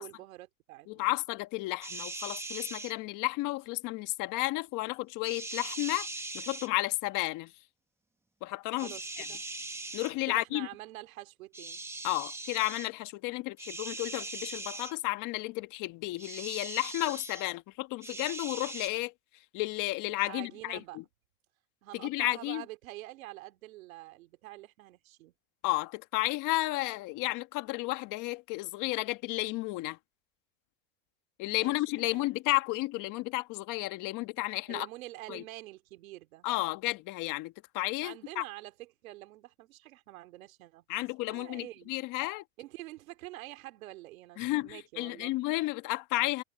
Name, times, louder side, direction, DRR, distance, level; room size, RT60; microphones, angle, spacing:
voice 1, 0.0-1.1 8.8-9.4 10.3-11.8 20.2-21.0 21.8-25.3 31.5-32.3 34.7-36.5 38.0-41.9 42.6-45.3, right 17 dB, 85° right, 2.6 m, -47 dB
voice 2, 0.9-6.1 6.3-7.5 8.4-9.3 9.9-10.7 12.0-19.1 19.5-21.0 21.9-22.6 25.6-30.0 31.4-34.9 35.3-35.4 36.4-38.4 40.9-42.4 44.4-46.4, left 20 dB, 50° left, 1.6 m, -32 dB
sound 1, 1.8-2.9 5.2-6.7 8.8-10.1 11.5-12.9 13.6-14.9 16.2-17.5 18.0-18.9, right 2 dB, 5° right, 1.2 m, -40 dB
supercardioid pair, 135°, 40 cm